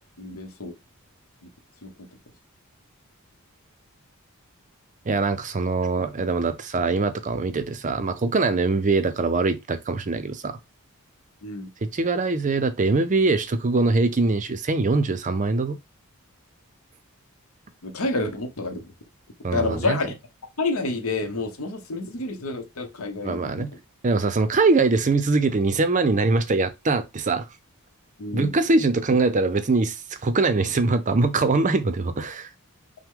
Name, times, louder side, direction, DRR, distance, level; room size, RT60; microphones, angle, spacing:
voice 1, 0.2-0.7 1.8-2.1 11.4-11.7 17.8-18.9 19.5-20.1 20.6-23.7 28.2-28.6, left 3 dB, 65° left, 0.9 m, -29 dB
voice 2, 5.1-10.6 11.8-15.8 19.4-20.0 23.2-23.7 24.0-27.5 28.3-32.5, right 3 dB, 35° right, 0.5 m, -22 dB
5.8 x 2.1 x 3.7 m
head